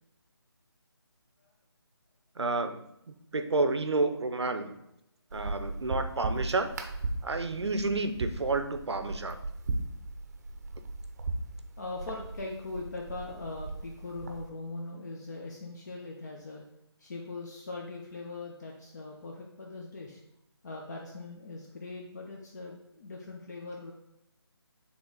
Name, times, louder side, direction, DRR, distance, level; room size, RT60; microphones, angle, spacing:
voice 1, 2.4-4.8 5.3-6.7 7.2-9.4, right 3 dB, 80° right, 9 dB, 0.7 m, -30 dB
sound 1, 5.3-14.5, right 2 dB, 35° right, 0.7 m, -37 dB
voice 2, 11.8-16.6 17.0-20.2 20.6-23.9, left 3 dB, 40° left, -1 dB, 0.8 m, -41 dB
6.9 x 3.6 x 3.9 m, 0.84 s
figure-of-eight pair, 160°, 14 cm